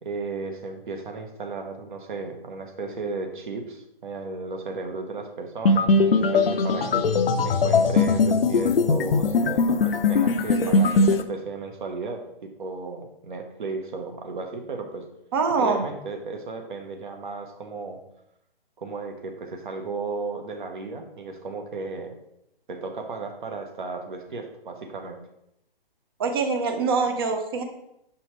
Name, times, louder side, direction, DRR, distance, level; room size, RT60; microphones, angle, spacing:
voice 1, 0.0-7.1 7.4-15.1 15.6-18.0 18.8-22.1 22.7-25.2, right 3 dB, 55° right, 4 dB, 1.2 m, -34 dB
sound 1, 5.6-11.2, left 3 dB, 75° left, 0.7 m, -20 dB
voice 2, 15.3-15.8 26.2-27.6, right 4 dB, 25° right, 5 dB, 0.6 m, -24 dB
6.8 x 5.5 x 3.1 m, 0.81 s
hypercardioid pair, 155°, 30 cm